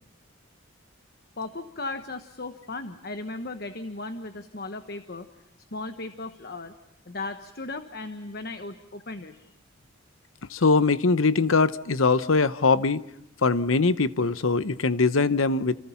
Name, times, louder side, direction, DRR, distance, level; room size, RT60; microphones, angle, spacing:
voice 1, 1.4-5.3 5.7-6.7 7.1-9.5, left 3 dB, 50° left, 8 dB, 1.2 m, -36 dB
voice 2, 10.5-13.1 13.4-15.8, left 4 dB, 80° left, 14 dB, 0.9 m, -22 dB
29.0 x 28.5 x 5.8 m, 0.78 s
head